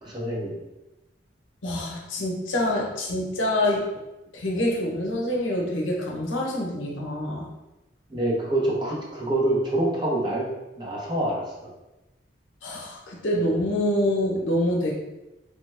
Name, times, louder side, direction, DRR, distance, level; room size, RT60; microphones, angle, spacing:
voice 1, 0.0-0.6 8.1-10.4 10.8-11.7, right 1 dB, 25° right, -4 dB, 0.6 m, -26 dB
voice 2, 1.6-3.9 4.3-7.5 12.6-14.9, left 1 dB, 90° left, -1 dB, 0.7 m, -26 dB
3.3 x 2.1 x 3.2 m, 1.0 s
head